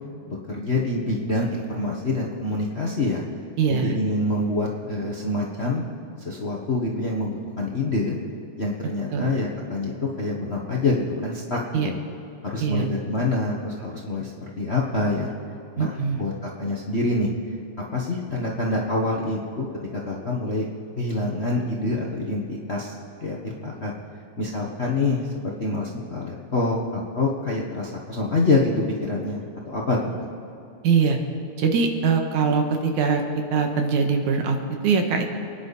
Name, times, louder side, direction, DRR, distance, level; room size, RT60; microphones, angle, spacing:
voice 1, 0.3-3.2 3.7-5.8 6.2-8.2 8.6-11.9 12.4-15.3 15.7-17.3 17.9-19.7 19.9-20.6 21.0-22.9 23.2-23.9 24.4-25.3 25.6-30.1, left 2 dB, 50° left, -2 dB, 0.7 m, -26 dB
voice 2, 3.6-4.0 9.1-9.3 11.7-11.9 12.6-12.9 15.8-16.2 30.8-31.2 31.6-33.2 33.5-34.6 34.8-35.3, right 5 dB, 90° right, 4 dB, 2.8 m, -22 dB
28.5 x 10.5 x 4.2 m, 2.8 s
omnidirectional pair, 3.4 m